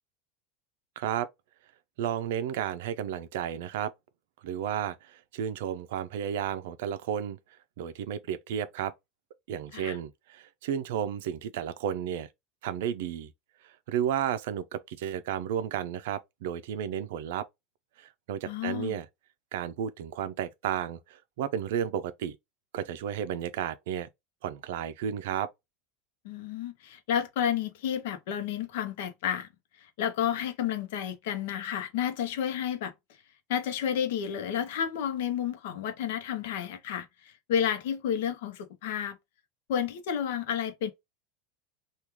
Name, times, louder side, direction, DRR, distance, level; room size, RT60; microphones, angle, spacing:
voice 1, 1.0-1.3 2.0-3.9 4.4-7.4 7.8-8.9 9.5-12.3 12.6-13.3 13.6-17.4 18.0-19.1 19.5-22.4 22.7-24.1 24.4-25.5, right 9 dB, 75° right, 0.4 m, -32 dB
voice 2, 18.5-19.0 26.2-29.5 30.0-32.9 33.5-39.2 39.7-40.9, left 9 dB, 70° left, 0.7 m, -31 dB
3.0 x 2.3 x 3.4 m
supercardioid pair, 165°, 0 cm